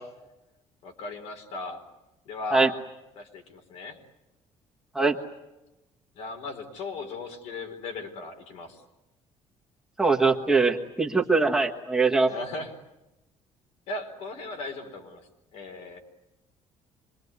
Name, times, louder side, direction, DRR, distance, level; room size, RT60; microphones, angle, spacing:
voice 1, 0.8-1.8 2.3-2.8 3.2-4.0 6.1-8.8 12.2-12.7 13.9-16.0, left 3 dB, 65° left, 5 dB, 4.6 m, -37 dB
voice 2, 10.0-12.3, right 3 dB, 5° right, 0 dB, 1.4 m, -22 dB
26.5 x 22.5 x 9.7 m, 0.96 s
cardioid pair, 175°, 11 cm